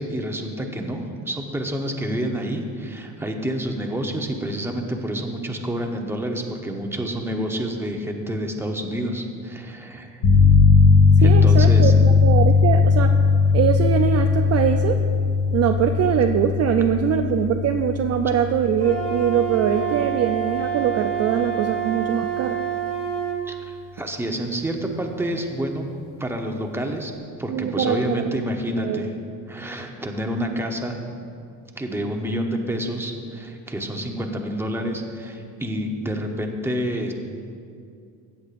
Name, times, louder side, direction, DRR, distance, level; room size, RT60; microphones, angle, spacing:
voice 1, 0.0-10.2 11.2-11.9 23.5-25.9 26.2-27.1 27.4-29.1 29.5-31.0 31.8-37.1, equal, 5° right, 2 dB, 0.9 m, -28 dB
sound 1, 10.2-20.8, left 4 dB, 75° left, 1.9 m, -18 dB
voice 2, 11.2-13.1 13.5-15.0 15.5-22.6 27.5-28.4 28.8-29.1, right 8 dB, 45° right, 5 dB, 0.4 m, -22 dB
Wind instrument woodwind instrument, 18.8-23.4, right 9 dB, 20° left, 2.4 m, -27 dB
15.5 x 8.0 x 2.5 m, 2.3 s
cardioid pair, 105°, 38 cm